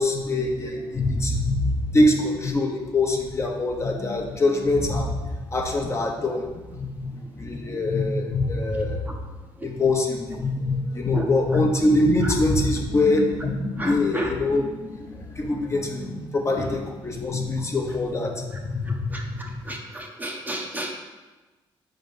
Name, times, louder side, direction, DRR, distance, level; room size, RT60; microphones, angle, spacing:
voice 1, 0.0-9.2 9.6-19.6, left 2 dB, 30° left, 2 dB, 0.8 m, -24 dB
voice 2, 13.8-14.3 19.1-20.9, right 2 dB, 20° right, 1 dB, 0.7 m, -32 dB
4.6 x 3.9 x 5.4 m, 1.2 s
cardioid pair, 100°, 10 cm